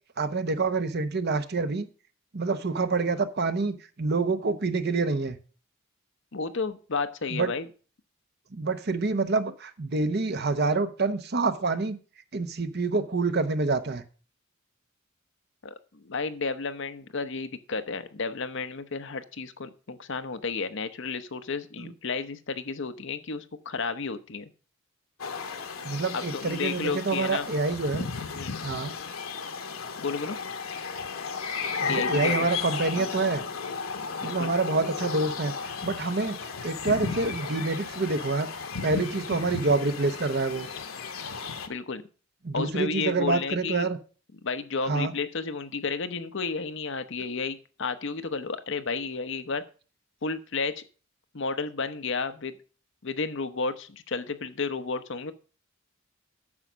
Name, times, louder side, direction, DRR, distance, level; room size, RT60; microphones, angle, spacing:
voice 1, 0.2-1.9 2.3-5.4 7.3-7.5 8.5-12.0 12.3-14.0 21.8-21.9 25.8-28.1 28.6-28.9 31.8-33.4 34.2-35.5 35.8-36.4 36.6-38.5 38.8-40.7 42.4-44.0 44.9-45.1, right 3 dB, 50° right, 10 dB, 0.9 m, -27 dB
voice 2, 6.3-7.7 15.6-24.5 26.1-27.5 28.4-28.5 30.0-30.4 31.9-32.5 32.9-33.1 34.2-34.5 41.7-42.0 42.5-43.9 44.4-49.6 50.2-50.8 51.3-52.6 53.0-55.3, left 4 dB, 60° left, 10 dB, 0.9 m, -32 dB
sound 1, 25.2-41.7, left 5 dB, 85° left, 1.3 m, -34 dB
9.8 x 6.8 x 6.2 m, 0.38 s
head